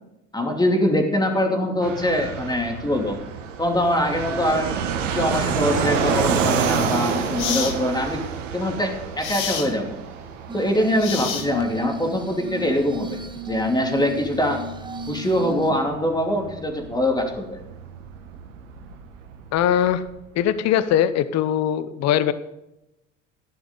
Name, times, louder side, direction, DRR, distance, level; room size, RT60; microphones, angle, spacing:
voice 1, 0.3-3.2 3.6-4.7 5.1-8.2 8.5-9.9 10.5-13.2 13.4-14.6 15.1-17.6, left 1 dB, 10° left, 2 dB, 2.8 m, -23 dB
Fixed-wing aircraft airplane, 1.8-20.2, right 7 dB, 80° right, 1.4 m, -29 dB
sound 1, 6.6-6.7 7.4-7.8 9.2-9.7 11.0-11.8, left 8 dB, 70° left, 1.5 m, -28 dB
Glass, 10.5-15.7, right 2 dB, 10° right, 1.3 m, -35 dB
voice 2, 19.5-20.0 20.3-22.3, left 10 dB, 45° left, 14 dB, 0.8 m, -21 dB
13.5 x 11.0 x 3.9 m, 0.91 s
hypercardioid pair, 65°, 37 cm